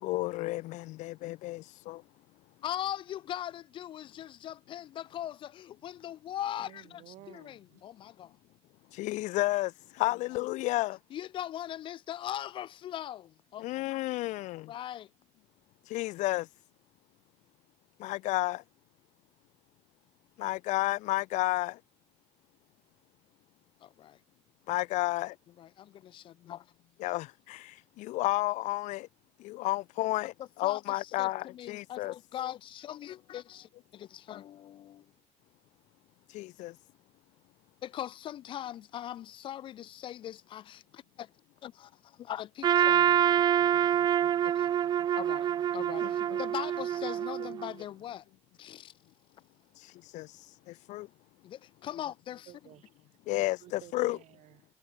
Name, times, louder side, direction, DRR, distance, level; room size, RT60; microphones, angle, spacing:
voice 1, 0.0-2.0 8.9-11.0 13.6-14.7 15.9-16.5 18.0-18.6 20.4-21.8 24.7-25.3 27.0-29.1 29.4-32.1 36.3-36.7 46.0-46.4 50.1-50.3 50.7-51.1 53.3-54.2, left 18 dB, 90° left, 1.4 m, -32 dB
voice 2, 2.6-8.3 10.0-10.1 11.1-13.9 14.6-15.1 23.8-24.2 25.6-26.7 30.6-35.1 37.8-41.3 41.6-43.1 44.4-44.7 45.2-45.5 45.7-48.2 48.6-48.9 51.0-51.1 51.4-52.5, left 11 dB, 45° left, 0.4 m, -40 dB
voice 3, 6.6-7.8 51.9-52.1 52.5-53.1 53.6-54.7, right 16 dB, 75° right, 7.0 m, -54 dB
Trumpet, 42.6-47.7, right 10 dB, 35° right, 0.4 m, -26 dB
cardioid pair, 170°, 12 cm